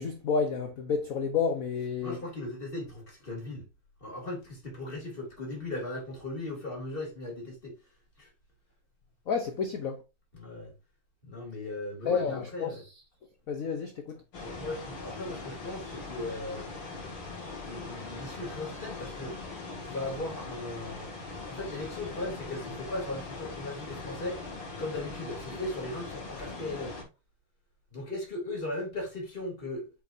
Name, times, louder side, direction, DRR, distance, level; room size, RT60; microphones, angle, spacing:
voice 1, 0.0-2.2 9.3-10.0 12.0-12.8 13.5-14.2, left 5 dB, 55° left, 1.0 m, -30 dB
voice 2, 2.0-3.7 4.0-7.7 8.2-8.3 10.3-10.7 11.2-12.8 14.4-16.8 17.6-19.3 19.8-21.2 21.5-24.4 24.8-27.0 27.9-29.9, left 2 dB, 25° left, 3.3 m, -37 dB
sound 1, 14.3-27.0, left 3 dB, 80° left, 3.8 m, -41 dB
8.4 x 5.4 x 2.7 m
omnidirectional pair, 2.4 m